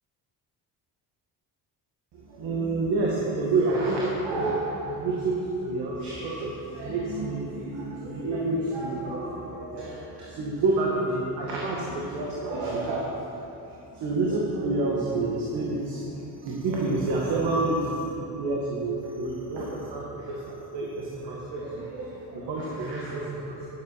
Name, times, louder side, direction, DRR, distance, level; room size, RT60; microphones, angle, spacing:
voice 1, 2.3-13.1 13.9-16.2 16.4-17.8 18.3-23.8, right 2 dB, 80° right, -4 dB, 1.7 m, -29 dB
10.5 x 7.6 x 5.6 m, 3.0 s
cardioid pair, 95°, 40 cm